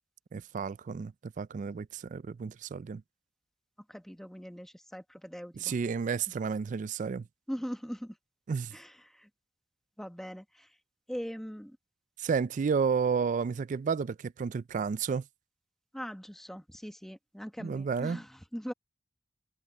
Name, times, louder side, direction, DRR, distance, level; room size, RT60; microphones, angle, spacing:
voice 1, 0.3-3.0 5.6-7.3 8.5-8.8 12.2-15.2 17.6-18.2, right 6 dB, 45° right, 0.3 m, -31 dB
voice 2, 3.9-5.7 7.5-8.2 8.7-9.3 10.0-10.7 11.1-11.8 15.9-18.7, equal, ahead, 1.3 m, -41 dB
head